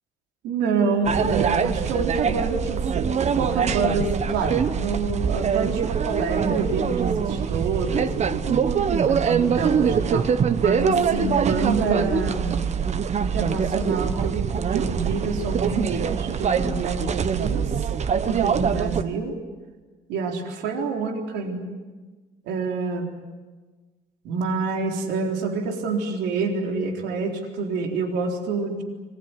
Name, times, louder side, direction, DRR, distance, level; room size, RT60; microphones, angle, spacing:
voice 1, 0.4-8.6 9.1-10.3 10.6-12.7 13.2-14.4 14.7-17.9 18.2-19.4 20.1-21.7 22.5-23.1 24.2-28.8, right 4 dB, 85° right, 3 dB, 3.9 m, -27 dB
sound 1, 1.0-19.0, right 7 dB, 40° right, 1.2 m, -24 dB
26.0 x 21.0 x 9.7 m, 1.3 s
cardioid pair, 110°, 17 cm